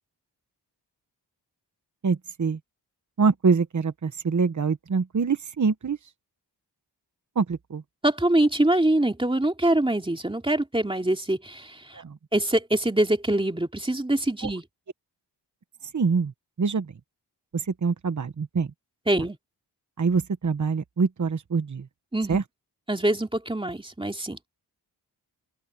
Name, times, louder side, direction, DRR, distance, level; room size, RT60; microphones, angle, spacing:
voice 1, 2.0-2.6 3.2-6.0 7.4-7.8 11.9-12.2 15.9-16.3 16.6-16.9 17.5-18.7 20.0-21.9 22.3-22.4, right 5 dB, 45° right, 1.1 m, -25 dB
voice 2, 8.0-12.0 12.3-14.6 19.1-19.4 22.1-22.4 22.9-24.4, right 1 dB, 10° right, 2.7 m, -24 dB
open air
wide cardioid pair, 105°, 42 cm